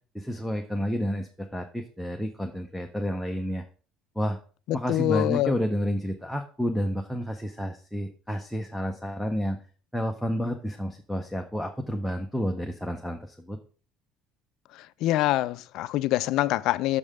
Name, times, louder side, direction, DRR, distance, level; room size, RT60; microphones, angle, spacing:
voice 1, 0.1-3.6 4.2-4.4 4.7-9.6 9.9-13.6, equal, ahead, 0.5 m, -30 dB
voice 2, 4.7-5.5 15.0-17.0, left 15 dB, 55° left, 0.3 m, -25 dB
6.5 x 5.3 x 4.9 m
cardioid pair, 165°, 0 cm